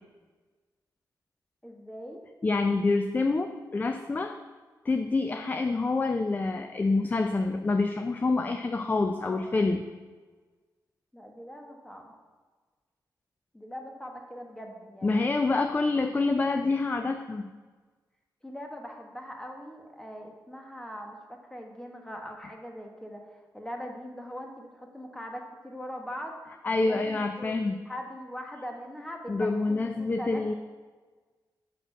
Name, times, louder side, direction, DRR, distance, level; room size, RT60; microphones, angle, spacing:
voice 1, 1.6-2.2 9.2-9.6 11.1-12.1 13.5-15.3 18.4-27.5 27.8-30.4, equal, 10° left, 2 dB, 1.2 m, -41 dB
voice 2, 2.4-4.4 4.8-9.8 15.0-17.4 26.6-27.8 29.3-30.5, left 3 dB, 25° left, 7 dB, 0.4 m, -27 dB
6.7 x 6.1 x 5.9 m, 1.4 s
wide cardioid pair, 125°, 7 cm